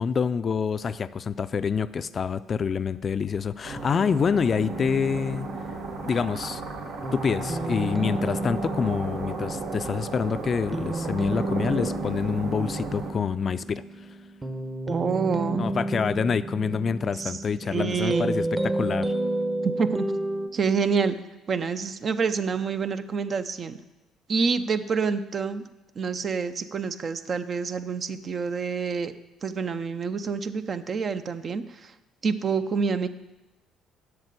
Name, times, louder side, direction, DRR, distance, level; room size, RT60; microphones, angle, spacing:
voice 1, 0.0-5.5 6.0-6.6 7.1-13.8 15.6-19.1, left 6 dB, 45° left, 14 dB, 0.4 m, -27 dB
sound 1, 3.6-13.1, right 3 dB, 70° right, 1.5 m, -35 dB
sound 2, 4.5-20.5, right 1 dB, 20° right, 1.0 m, -32 dB
voice 2, 14.9-15.7 17.1-17.4 17.7-18.3 19.6-20.1 20.5-21.2 21.5-23.8 24.3-25.6 26.0-29.1 29.4-31.9 32.2-33.1, right 5 dB, 45° right, 10 dB, 0.7 m, -27 dB
8.0 x 6.6 x 8.3 m, 1.1 s
supercardioid pair, 75°, 0 cm